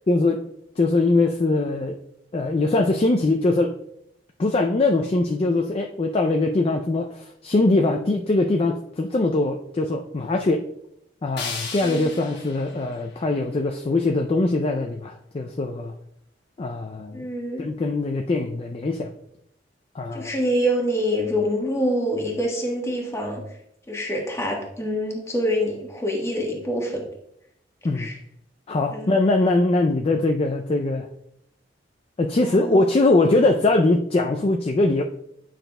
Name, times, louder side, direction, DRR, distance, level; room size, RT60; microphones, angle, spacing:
voice 1, 0.1-0.4 0.8-2.0 2.3-3.7 4.4-10.6 11.2-15.9 16.6-17.2 17.6-19.1 19.9-20.3 27.8-28.1 28.7-31.1 32.2-35.0, left 2 dB, 30° left, 3 dB, 0.4 m, -22 dB
sound 1, 11.4-14.3, left 5 dB, 65° left, 1.2 m, -37 dB
voice 2, 11.8-12.2 17.1-17.7 20.1-23.4 23.9-27.1 27.9-28.2 28.9-29.2 32.4-32.9, equal, 15° left, 0 dB, 1.2 m, -26 dB
9.0 x 5.8 x 2.2 m, 0.75 s
head